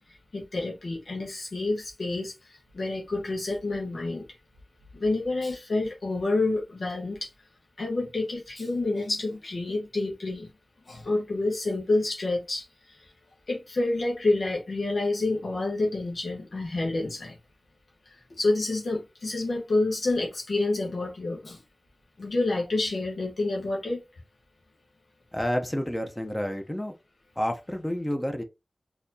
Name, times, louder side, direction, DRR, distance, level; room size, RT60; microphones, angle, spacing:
voice 1, 0.3-4.2 4.9-7.3 7.8-10.5 10.9-13.1 13.5-17.4 18.1-21.6 22.2-24.0, left 2 dB, 80° left, 1.2 m, -28 dB
voice 2, 25.3-26.9 27.4-28.4, equal, 15° left, 0.7 m, -29 dB
4.0 x 2.9 x 2.7 m
wide cardioid pair, 55°, 0 cm